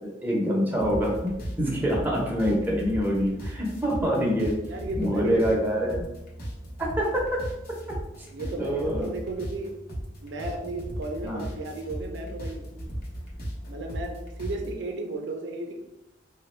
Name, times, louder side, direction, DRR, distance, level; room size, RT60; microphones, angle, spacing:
voice 1, 0.0-1.3 1.6-4.5 4.9-6.1 6.8-7.4 8.6-9.1 11.2-11.4, equal, 10° right, -3 dB, 0.7 m, -25 dB
sound 1, 0.8-14.7, equal, 55° left, 0.8 m, -37 dB
voice 2, 4.7-5.7 8.3-9.7 10.2-12.7 13.7-15.8, right 2 dB, 65° right, 3 dB, 0.5 m, -34 dB
3.3 x 2.2 x 3.1 m, 0.91 s
head